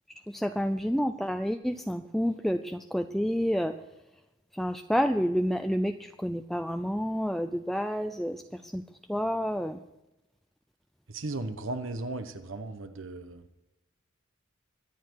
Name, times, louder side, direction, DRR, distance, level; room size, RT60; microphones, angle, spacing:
voice 1, 0.3-3.7 4.5-8.8 9.1-9.8, equal, ahead, 6 dB, 0.5 m, -29 dB
voice 2, 11.1-13.4, right 2 dB, 70° right, 9 dB, 1.1 m, -36 dB
24.0 x 9.3 x 4.8 m, 0.93 s
head